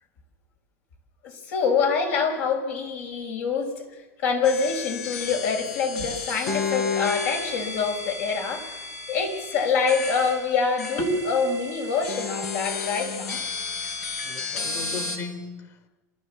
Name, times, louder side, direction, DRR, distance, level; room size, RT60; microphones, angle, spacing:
voice 1, 1.2-3.9 4.2-8.7 9.1-13.4, left 5 dB, 70° left, 5.7 m, -25 dB
sound 1, 4.4-15.2, left 4 dB, 85° left, 4.4 m, -32 dB
voice 2, 14.2-15.9, left 4 dB, 40° left, 2.7 m, -37 dB
27.5 x 13.0 x 7.3 m
hypercardioid pair, 100°, 8 cm